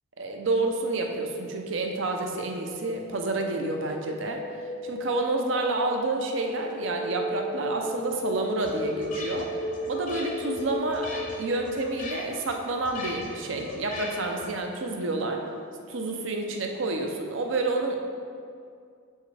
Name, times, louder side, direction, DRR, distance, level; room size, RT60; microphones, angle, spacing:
voice 1, 0.2-4.4 4.8-9.5 9.9-15.4 15.9-18.0, right 2 dB, 60° right, 2 dB, 0.6 m, -29 dB
sound 1, 2.2-11.9, left 1 dB, 20° left, 0.3 m, -35 dB
sound 2, 8.1-14.7, left 3 dB, 40° left, 0.7 m, -41 dB
7.2 x 4.5 x 3.3 m, 2.3 s
head